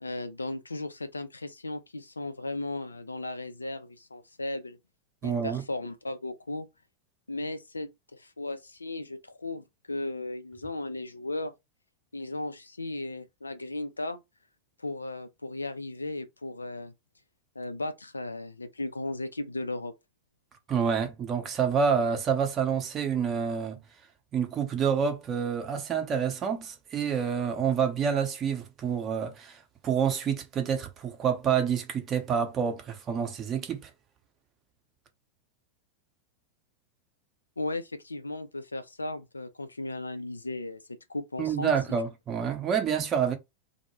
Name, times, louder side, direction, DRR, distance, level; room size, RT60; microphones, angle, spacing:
voice 1, 0.0-4.8 5.2-6.7 7.3-11.5 12.1-14.2 14.8-16.9 17.6-19.9 37.6-41.7, left 2 dB, 80° left, 0.3 m, -36 dB
voice 2, 5.2-5.6 20.7-23.8 24.3-33.9 41.4-43.3, right 7 dB, 30° right, 0.7 m, -28 dB
2.1 x 2.0 x 3.1 m
figure-of-eight pair, 90°, 0 cm